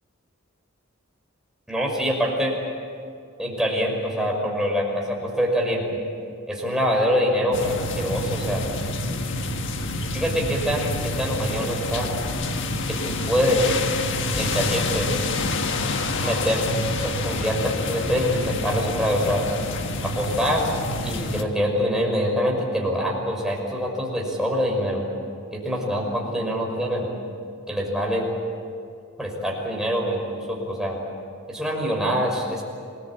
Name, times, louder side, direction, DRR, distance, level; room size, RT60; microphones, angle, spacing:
voice 1, 1.7-2.6 3.4-6.0 6.5-8.6 10.1-12.1 12.9-13.7 14.4-15.1 16.2-16.7 17.0-19.5 20.0-20.7 21.0-25.0 25.5-27.1 27.7-28.2 29.2-31.0 31.5-32.6, equal, 5° right, -1 dB, 5.7 m, -25 dB
sound 1, 7.5-21.4, left 2 dB, 60° left, 1.6 m, -27 dB
27.0 x 20.5 x 8.9 m, 2.4 s
head